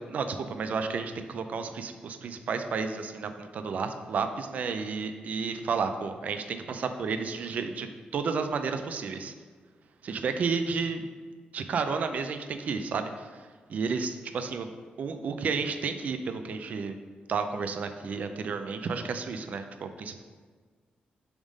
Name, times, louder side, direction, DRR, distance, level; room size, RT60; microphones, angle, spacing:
voice 1, 0.0-7.9 8.1-9.3 10.0-11.1 11.5-14.7 15.0-16.9 17.3-20.2, right 5 dB, 50° right, 7 dB, 0.4 m, -32 dB
7.1 x 3.6 x 5.2 m, 1.5 s
wide cardioid pair, 160°, 3 cm